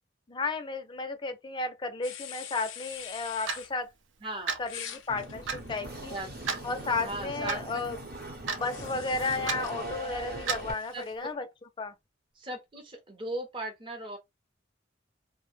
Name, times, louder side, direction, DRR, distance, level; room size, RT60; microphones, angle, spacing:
voice 1, 0.3-3.9 4.6-6.2 6.6-8.0 8.5-11.5 11.8-11.9, left 3 dB, 25° left, 0.4 m, -33 dB
sound 1, 2.0-3.7 4.6-7.1 8.6-11.1, left 10 dB, 85° left, 0.5 m, -45 dB
Clock, 3.5-3.7 4.5-4.7 5.5-5.6 6.5-6.7 7.5-7.6 8.5-8.7 9.5-9.6 10.5-10.7, right 5 dB, 75° right, 0.5 m, -31 dB
voice 2, 4.2-4.5 6.1-6.3 7.0-8.1 10.9-11.0 12.4-14.2, right 1 dB, 25° right, 0.6 m, -38 dB
sound 2, 5.1-10.7, right 1 dB, 50° right, 0.9 m, -40 dB
2.4 x 2.0 x 3.1 m
head